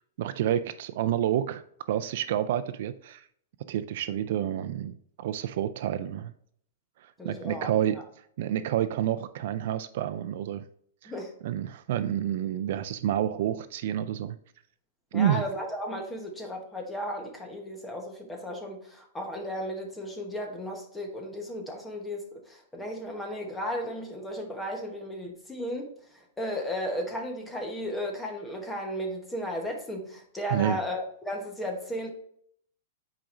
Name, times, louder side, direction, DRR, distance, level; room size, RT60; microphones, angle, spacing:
voice 1, 0.2-1.6 1.9-3.2 3.7-6.3 7.0-8.0 8.4-10.6 11.0-11.1 11.4-14.4 15.1-15.4 30.5-30.8, right 11 dB, 50° right, 11 dB, 0.3 m, -29 dB
voice 2, 7.2-8.0 11.1-11.3 15.1-32.1, equal, 5° left, 1 dB, 1.0 m, -35 dB
8.9 x 4.9 x 2.6 m, 0.65 s
supercardioid pair, 170°, 0 cm